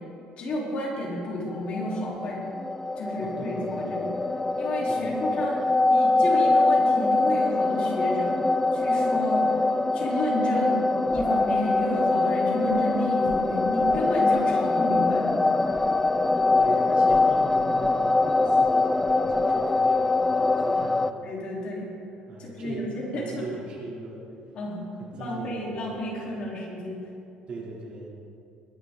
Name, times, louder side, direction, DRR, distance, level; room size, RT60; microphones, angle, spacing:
voice 1, 0.4-2.4 3.0-4.1 4.6-8.3 8.7-9.6 9.9-10.8 11.1-15.3 15.6-15.9 21.2-21.9 22.4-23.4 24.5-24.9 25.1-27.0, left 1 dB, 45° left, -3 dB, 3.4 m, -31 dB
sound 1, 1.6-21.1, left 3 dB, 10° left, 0.3 m, -23 dB
voice 2, 3.2-4.0 4.9-5.2 16.6-21.2 22.3-24.2 25.0-25.9 26.3-26.4 27.5-28.1, right 2 dB, 40° right, -3 dB, 2.8 m, -39 dB
21.5 x 11.0 x 3.8 m, 2.6 s
cardioid pair, 160°, 3 cm